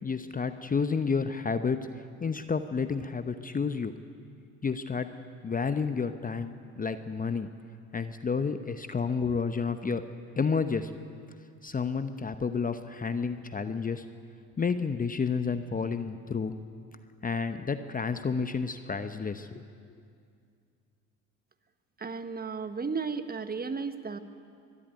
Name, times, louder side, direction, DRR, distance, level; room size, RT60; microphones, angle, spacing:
voice 1, 0.0-1.8 2.2-3.9 4.6-5.1 5.4-7.5 7.9-10.0 10.4-10.9 11.6-14.0 14.6-16.5 17.2-19.6, left 5 dB, 20° left, 10 dB, 0.9 m, -30 dB
voice 2, 22.0-24.2, right 5 dB, 25° right, 10 dB, 1.3 m, -34 dB
23.0 x 12.5 x 9.3 m, 2.3 s
hypercardioid pair, 65°, 38 cm